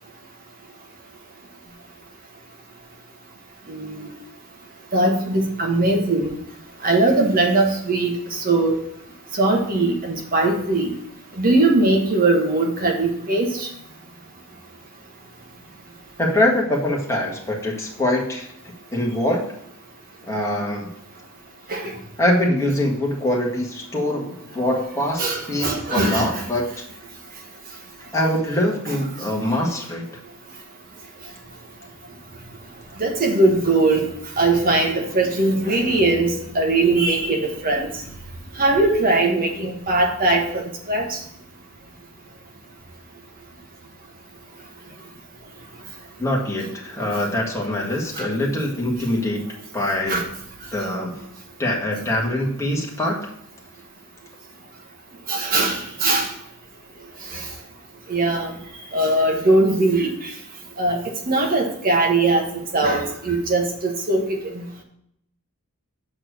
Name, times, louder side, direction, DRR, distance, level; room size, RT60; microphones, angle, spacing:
voice 1, 3.7-4.1 4.9-6.3 6.8-8.8 9.3-10.9 11.4-13.7 21.7-22.0 25.2-26.5 33.0-34.1 34.4-38.0 38.6-41.2 48.2-48.3 50.1-50.3 55.3-56.3 57.3-57.5 58.1-58.5 58.9-60.3 60.8-64.8, right 2 dB, 40° right, 1 dB, 1.3 m, -20 dB
voice 2, 16.2-18.5 18.9-19.4 20.3-20.9 22.2-26.6 28.1-30.1 46.2-50.2 50.7-51.1 51.6-53.2, left 1 dB, 15° left, -2 dB, 1.6 m, -23 dB
6.5 x 4.4 x 6.3 m, 0.74 s
head